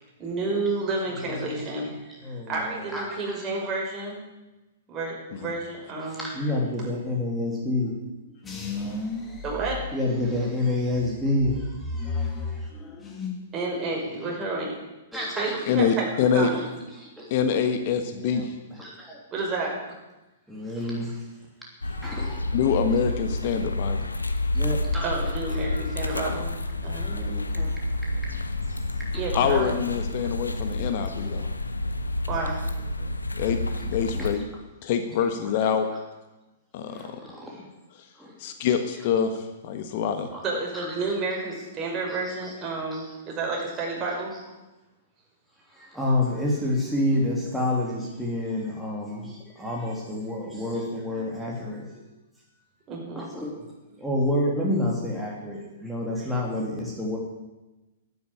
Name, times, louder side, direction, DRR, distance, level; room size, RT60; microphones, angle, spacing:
voice 1, 0.2-1.9 2.2-4.2 4.9-6.3 9.4-9.8 13.5-14.8 15.4-16.6 19.3-19.7 25.0-26.5 26.8-27.7 29.2-29.7 30.2-30.3 32.3-32.5 40.4-44.3 52.9-53.2, right 3 dB, 25° right, -2 dB, 5.7 m, -30 dB
voice 2, 2.2-2.5 2.9-3.4 6.0-8.0 8.5-8.6 9.9-12.7 15.1-16.0 17.0-17.3 18.1-18.4 18.7-19.2 20.5-21.2 21.8-22.6 23.5-23.6 24.5-25.1 27.0-27.2 27.5-27.7 28.3-28.4 28.7-28.8 30.8-30.9 31.2-31.5 33.0-33.1 34.1-34.3 36.9-37.6 38.2-38.3 40.3-40.4 40.7-41.0 42.2-42.5 42.9-43.1 45.7-51.9 53.1-53.6 53.9-57.2, left 1 dB, ahead, -4 dB, 3.1 m, -29 dB
sound 1, 8.4-10.5 10.9-13.5 13.8-14.4, left 3 dB, 15° left, 2.6 m, -34 dB
voice 3, 15.7-16.5 17.3-18.5 22.5-24.0 29.3-31.4 33.4-34.4 34.8-35.9 36.7-37.1 38.4-39.4 39.6-40.3, left 7 dB, 50° left, 7 dB, 1.4 m, -25 dB
sound 2, 21.8-34.3, left 2 dB, 90° left, 1.2 m, -29 dB
11.5 x 9.6 x 9.8 m, 1.1 s
figure-of-eight pair, 115°, 0 cm